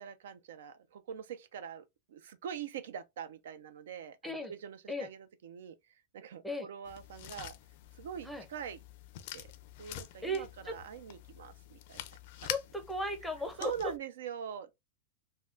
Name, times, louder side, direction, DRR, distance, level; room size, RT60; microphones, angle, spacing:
voice 1, 0.0-5.8 6.1-7.6 7.9-8.8 9.3-9.5 9.8-12.0 12.4-12.5 13.6-14.7, right 8 dB, 85° right, 0.4 m, -43 dB
sound 1, 6.8-14.0, left 13 dB, 55° left, 0.4 m, -46 dB
voice 2, 10.2-10.8 12.5-13.9, equal, ahead, 0.5 m, -36 dB
3.4 x 2.2 x 2.4 m
supercardioid pair, 155°, 0 cm